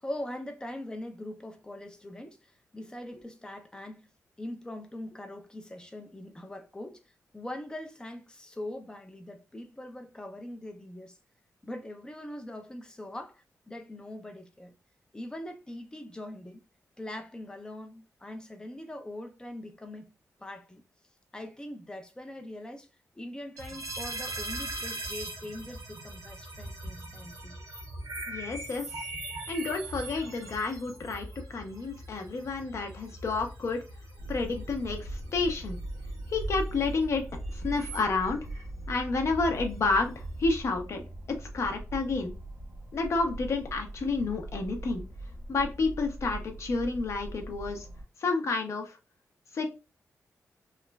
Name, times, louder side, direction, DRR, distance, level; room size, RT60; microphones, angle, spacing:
voice 1, 0.0-4.1 4.4-11.2 11.6-14.7 15.1-16.6 17.0-20.1 20.4-20.8 21.3-22.9 23.2-27.6, left 1 dB, 15° left, 0.4 m, -42 dB
sound 1, 23.6-40.6, right 1 dB, 80° right, 0.9 m, -41 dB
voice 2, 28.3-28.9 29.5-33.8 34.3-35.8 36.3-37.2 37.5-38.5 38.9-42.3 42.9-45.0 45.5-47.9 48.2-49.0 49.5-49.7, left 3 dB, 55° left, 0.6 m, -30 dB
sound 2, 34.2-48.0, right 1 dB, 55° right, 1.3 m, -40 dB
3.0 x 2.3 x 2.2 m
wide cardioid pair, 155°, 6 cm